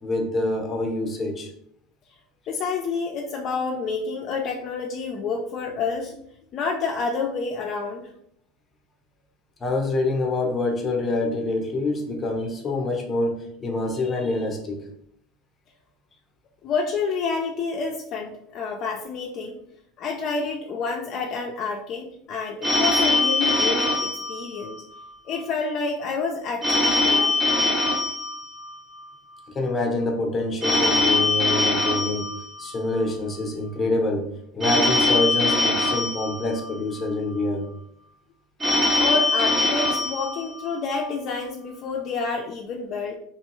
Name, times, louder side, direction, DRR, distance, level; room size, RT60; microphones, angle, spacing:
voice 1, 0.0-1.5 9.6-14.8 29.5-32.3 32.6-34.3 34.5-37.7, left 2 dB, 20° left, 2 dB, 0.7 m, -26 dB
voice 2, 2.5-6.2 6.5-8.1 16.6-19.6 20.0-24.8 25.3-27.4 39.0-43.2, left 4 dB, 45° left, 1 dB, 0.3 m, -29 dB
Telephone, 22.6-25.1 26.6-29.1 30.6-33.1 34.6-37.1 38.6-41.1, left 2 dB, 15° right, 0.7 m, -23 dB
2.9 x 2.2 x 2.9 m, 0.72 s
supercardioid pair, 120°, 0 cm